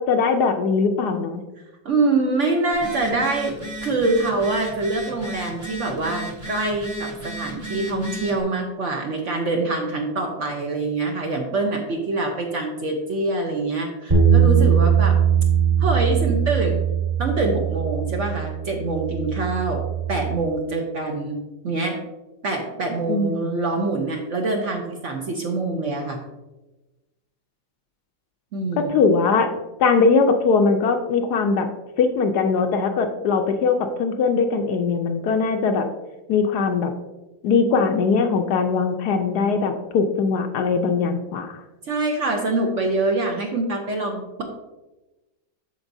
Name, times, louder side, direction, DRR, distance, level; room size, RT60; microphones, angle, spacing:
voice 1, 0.0-1.4 23.1-23.6 28.8-29.5 29.8-31.7 32.0-35.9 36.3-36.9 37.4-41.6, left 4 dB, 70° left, 6 dB, 1.1 m, -20 dB
voice 2, 1.8-3.5 3.8-15.2 15.8-16.8 17.2-19.8 20.1-22.0 22.4-26.2 28.5-28.9 41.8-44.4, right 2 dB, 55° right, 2 dB, 0.9 m, -25 dB
Telephone, 2.7-8.4, right 1 dB, 15° right, 0.7 m, -34 dB
sound 1, 14.1-20.4, right 7 dB, 35° right, 1.7 m, -20 dB
13.0 x 4.5 x 2.6 m, 1.1 s
omnidirectional pair, 1.9 m